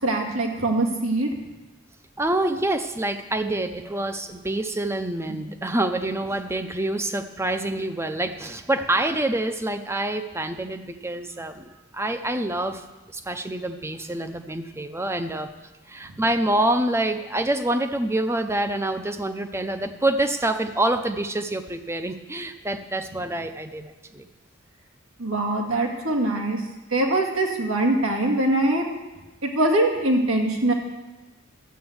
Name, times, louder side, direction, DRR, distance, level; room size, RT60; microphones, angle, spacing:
voice 1, 0.0-1.3 25.2-26.6 26.9-28.8 29.4-30.7, right 2 dB, 90° right, 1 dB, 2.1 m, -22 dB
voice 2, 2.2-15.5 15.9-24.3, right 1 dB, 10° right, 8 dB, 0.6 m, -26 dB
11.5 x 8.1 x 7.9 m, 1.1 s
head